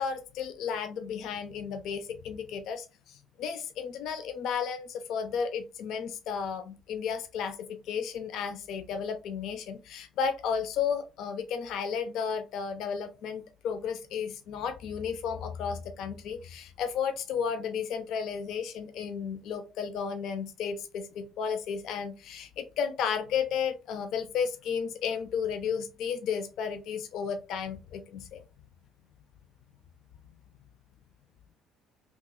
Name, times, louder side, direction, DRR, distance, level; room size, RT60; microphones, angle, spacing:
voice 1, 0.0-7.6 7.8-28.4, left 7 dB, 65° left, 8 dB, 0.4 m, -33 dB
2.9 x 2.4 x 3.6 m, 0.31 s
cardioid pair, 150°, 0 cm